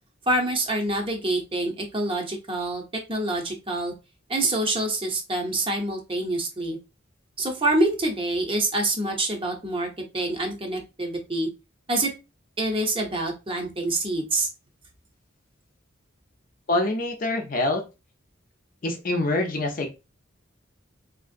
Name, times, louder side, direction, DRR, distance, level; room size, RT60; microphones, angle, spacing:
voice 1, 0.3-2.8 3.1-3.9 4.3-6.8 7.4-9.9 10.1-11.5 11.9-12.1 12.6-14.5, right 2 dB, 25° right, 0.7 m, -26 dB
voice 2, 16.7-17.8 18.8-19.9, left 2 dB, 45° left, 0.6 m, -25 dB
3.6 x 2.6 x 2.5 m
head